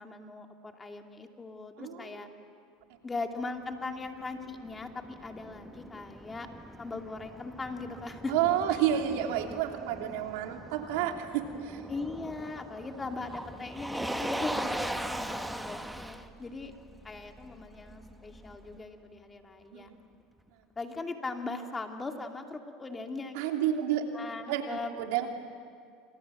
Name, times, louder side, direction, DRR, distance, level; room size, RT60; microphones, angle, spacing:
voice 1, 0.0-2.3 3.0-6.5 6.8-8.3 8.7-8.8 11.9-16.7 17.0-19.9 20.8-23.8 24.1-24.9, left 3 dB, 20° left, 4 dB, 2.5 m, -39 dB
Motor vehicle (road), 3.7-18.8, right 1 dB, 5° right, 1.4 m, -40 dB
voice 2, 8.3-11.9 19.7-20.0 23.3-24.1 24.5-25.3, right 10 dB, 75° right, 3 dB, 3.0 m, -30 dB
28.5 x 27.0 x 7.7 m, 2.2 s
supercardioid pair, 100°, 0 cm